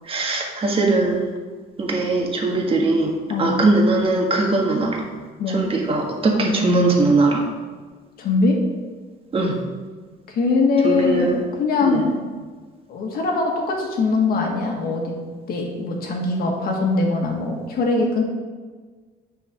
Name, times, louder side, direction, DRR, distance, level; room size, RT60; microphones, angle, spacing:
voice 1, 0.1-1.2 1.8-5.1 5.5-7.4 9.3-9.6 10.8-11.4 11.8-12.0, right 2 dB, 35° right, 0 dB, 1.5 m, -20 dB
voice 2, 3.3-3.6 5.4-5.6 6.3-6.5 8.2-8.6 10.3-12.1 12.9-15.1 15.5-18.2, left 3 dB, 65° left, 0 dB, 1.8 m, -22 dB
9.0 x 6.1 x 3.7 m, 1.4 s
cardioid pair, 110°, 17 cm